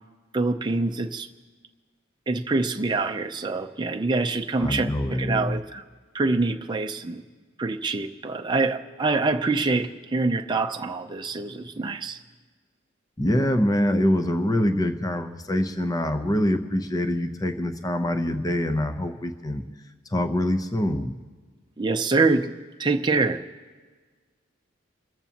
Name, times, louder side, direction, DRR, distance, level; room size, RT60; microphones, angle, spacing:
voice 1, 0.3-1.3 2.3-5.8 6.1-7.2 7.6-12.2 21.8-22.5 22.8-23.4, right 3 dB, 20° right, 0.6 m, -25 dB
voice 2, 4.6-5.6 13.2-19.6 20.1-21.1, left 1 dB, 20° left, 0.7 m, -24 dB
27.0 x 14.5 x 2.9 m
head